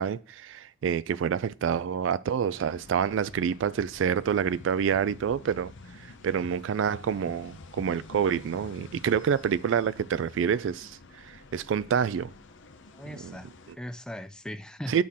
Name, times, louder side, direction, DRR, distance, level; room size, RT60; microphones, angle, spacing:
voice 1, 0.0-5.7 6.0-12.3 13.2-13.4 13.7-13.8 14.9-15.0, right 7 dB, 70° right, 0.3 m, -27 dB
sound 1, 2.5-13.7, left 3 dB, 70° left, 0.8 m, -48 dB
voice 2, 12.9-15.0, equal, 5° left, 0.4 m, -39 dB
8.5 x 5.7 x 3.6 m
head